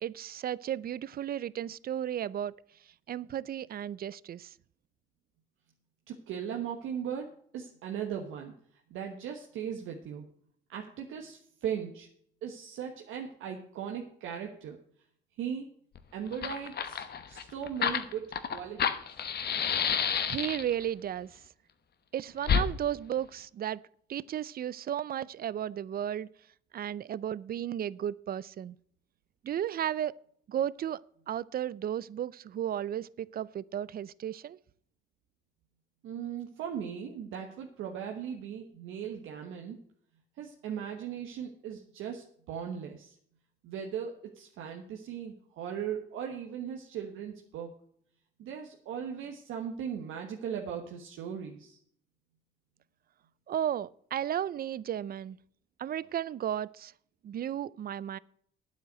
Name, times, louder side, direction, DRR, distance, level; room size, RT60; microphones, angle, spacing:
voice 1, 0.0-2.5 3.1-4.5 20.3-21.4 22.1-23.8 24.1-26.3 26.7-28.7 29.4-30.1 30.5-31.0 31.3-34.6 53.5-55.4 55.8-56.9 57.2-58.2, right 10 dB, 50° right, 21 dB, 0.5 m, -34 dB
voice 2, 6.1-8.5 8.9-10.3 10.7-12.1 12.4-14.8 15.4-15.7 16.1-19.0 36.0-39.8 40.4-43.1 43.6-47.7 48.4-51.8, right 8 dB, 85° right, 2 dB, 1.3 m, -38 dB
Fire, 15.9-16.0 16.3-20.8 22.4-22.7, left 7 dB, 55° left, 1.1 m, -29 dB
9.3 x 8.0 x 8.1 m, 0.63 s
cardioid pair, 90°, 20 cm